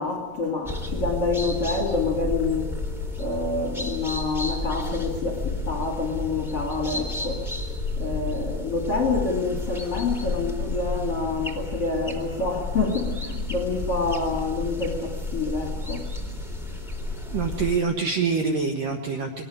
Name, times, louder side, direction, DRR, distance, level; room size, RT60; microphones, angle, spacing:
voice 1, 0.0-2.7 3.2-7.5 8.0-16.0, left 3 dB, 45° left, 4 dB, 2.2 m, -27 dB
sound 1, 0.6-17.8, left 2 dB, ahead, 2.8 m, -31 dB
voice 2, 17.3-19.4, right 5 dB, 65° right, 3 dB, 2.2 m, -25 dB
23.5 x 19.0 x 9.6 m, 1.2 s
omnidirectional pair, 5.9 m